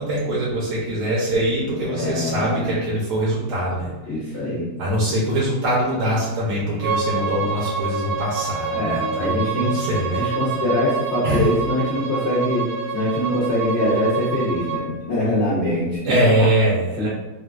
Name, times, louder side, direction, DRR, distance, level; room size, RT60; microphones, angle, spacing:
voice 1, 0.0-3.9 4.8-10.2 11.2-11.5 16.0-17.1, right 1 dB, 80° right, -5 dB, 1.2 m, -22 dB
voice 2, 1.8-2.8 4.1-4.7 8.7-9.7 10.1-12.7 12.9-16.1 17.0-17.1, left 1 dB, 60° left, -8 dB, 0.7 m, -23 dB
Bowed string instrument, 6.8-14.8, right 5 dB, 65° right, 1.0 m, -27 dB
sound 1, 8.9-12.7 13.4-16.0, equal, 35° left, 1.2 m, -37 dB
3.7 x 2.3 x 2.3 m, 1.1 s
omnidirectional pair, 1.7 m